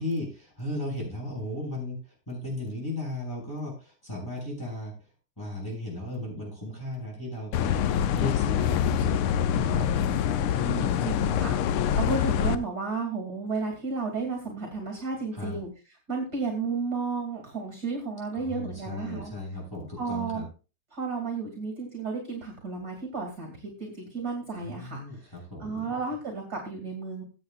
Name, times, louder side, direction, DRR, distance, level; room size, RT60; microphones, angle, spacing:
voice 1, 0.0-4.9 5.4-10.1 15.3-15.6 18.3-20.5 24.6-25.9, left 1 dB, 10° left, -3 dB, 7.4 m, -36 dB
sound 1, 7.5-12.6, left 9 dB, 85° left, 1.6 m, -25 dB
voice 2, 10.6-15.7 16.1-19.3 20.0-20.4 20.9-25.3 25.6-27.2, right 4 dB, 45° right, 2 dB, 2.9 m, -33 dB
21.5 x 8.1 x 2.4 m, 0.32 s
omnidirectional pair, 2.4 m